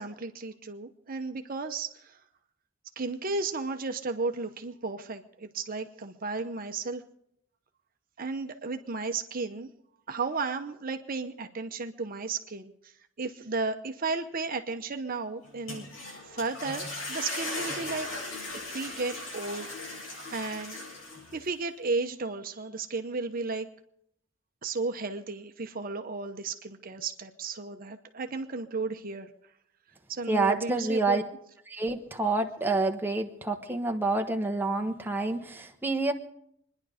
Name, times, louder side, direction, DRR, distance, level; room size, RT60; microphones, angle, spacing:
voice 1, 0.0-2.2 3.0-7.0 8.2-9.7 10.1-12.7 13.2-15.9 16.3-18.1 18.7-19.7 20.3-20.8 21.3-23.7 24.6-29.3 30.1-31.2, right 3 dB, 45° right, 6 dB, 0.8 m, -34 dB
sound 1, 15.5-21.5, left 2 dB, 80° left, 7.7 m, -38 dB
voice 2, 30.3-31.2 31.7-36.1, right 3 dB, 10° right, 4 dB, 1.1 m, -28 dB
25.5 x 10.5 x 5.0 m, 0.73 s
head